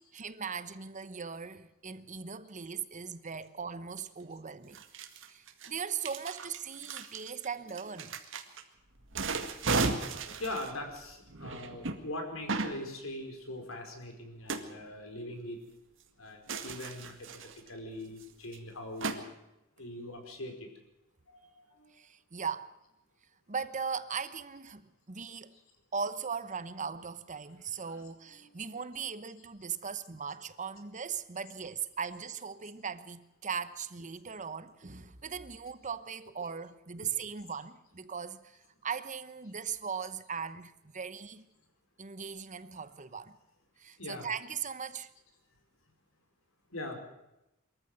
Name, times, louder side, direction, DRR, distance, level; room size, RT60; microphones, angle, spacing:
voice 1, 0.0-4.8 5.3-8.1 21.9-22.7 23.5-25.5 25.9-41.5 42.0-43.4 43.8-45.1, right 6 dB, 35° right, 1.0 m, -39 dB
sound 1, 4.0-4.1 4.7-8.6 9.0-12.0 12.5-12.8 14.5-14.6 16.5-17.7 18.2-18.3 18.5-18.6 19.0-19.2, right 3 dB, 65° right, 2.0 m, -35 dB
voice 2, 7.6-8.0 10.4-15.6 16.2-17.3 17.7-19.2 19.8-20.5 21.3-21.9 27.9-28.0 28.3-28.6 36.4-36.5 44.0-44.3 46.7-47.0, left 1 dB, 80° left, 4.8 m, -42 dB
23.0 x 14.0 x 7.9 m
head